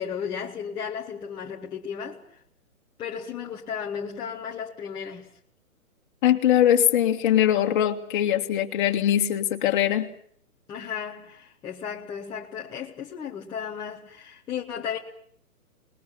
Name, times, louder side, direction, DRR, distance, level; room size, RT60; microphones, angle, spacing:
voice 1, 0.0-2.4 3.0-5.3 10.7-15.0, left 7 dB, 10° left, 1.1 m, -34 dB
voice 2, 6.2-10.1, left 11 dB, 35° left, 2.1 m, -21 dB
27.0 x 20.5 x 7.2 m
hypercardioid pair, 150°, 44 cm